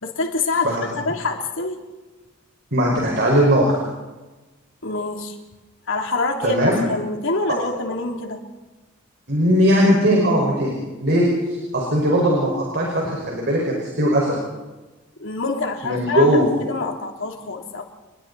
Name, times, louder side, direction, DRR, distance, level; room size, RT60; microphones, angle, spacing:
voice 1, 0.0-0.8 1.0-1.8 4.8-5.3 5.9-8.4 15.2-17.8, left 3 dB, 65° left, 2 dB, 3.2 m, -26 dB
voice 2, 2.7-3.8 6.4-6.8 7.5-7.6 9.3-14.4 15.8-16.5, equal, 55° right, -2 dB, 5.4 m, -19 dB
30.0 x 21.5 x 4.2 m, 1.2 s
head